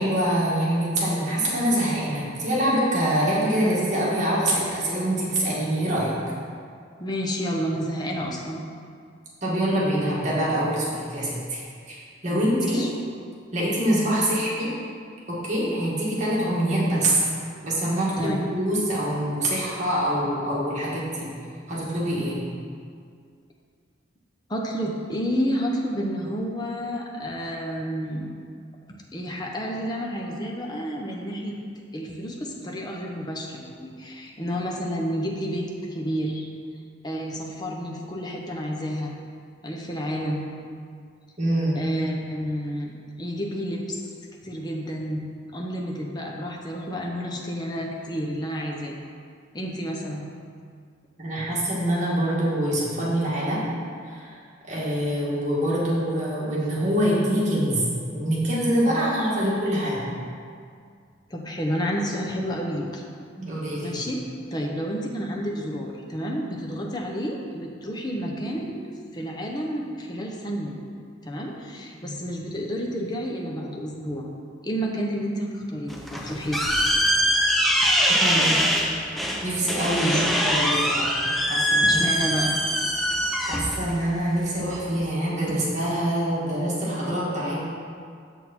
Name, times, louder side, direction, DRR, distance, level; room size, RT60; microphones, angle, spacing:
voice 1, 0.0-6.2 9.4-11.6 11.9-12.9 13.5-14.7 15.3-17.2 17.6-21.3 21.7-22.4 41.4-41.8 51.2-53.7 54.1-54.3 54.7-57.8 58.1-60.1 63.4-64.0 72.0-72.1 78.1-78.6 79.4-82.0 83.0-83.1 83.4-87.6, right 1 dB, 35° right, -7 dB, 1.9 m, -25 dB
voice 2, 7.0-8.6 12.3-12.5 12.7-12.9 18.2-18.4 24.5-28.3 29.1-31.6 31.9-36.5 37.0-39.1 39.6-40.4 41.7-42.9 43.2-44.1 44.4-45.2 45.5-49.0 49.5-50.3 61.3-63.0 63.8-64.2 64.5-68.7 69.1-70.7 71.2-74.3 74.6-76.6 80.0-80.2 81.8-82.5 85.5-85.6, equal, 20° left, -1 dB, 0.8 m, -30 dB
sound 1, 75.9-85.0, equal, ahead, 0.5 m, -23 dB
7.2 x 6.4 x 4.3 m, 2.2 s
head